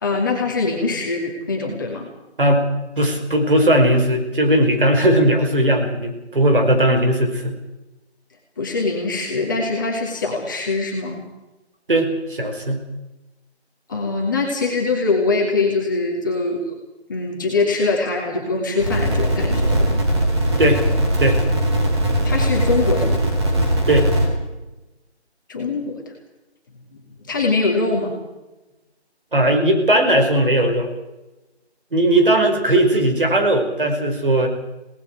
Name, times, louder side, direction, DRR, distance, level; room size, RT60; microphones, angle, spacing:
voice 1, 0.0-2.1 8.6-11.2 13.9-16.8 17.1-20.0 22.2-23.2 25.5-26.0 27.2-28.2, left 3 dB, 20° left, -1 dB, 2.4 m, -23 dB
voice 2, 3.0-7.6 11.9-12.8 20.6-20.8 21.2-21.4 23.9-24.1 29.3-30.9 31.9-34.5, right 1 dB, 50° right, 3 dB, 5.1 m, -17 dB
sound 1, 18.8-24.3, right 1 dB, 25° right, 4.3 m, -19 dB
29.0 x 19.0 x 4.7 m, 1.0 s
figure-of-eight pair, 165°, 33 cm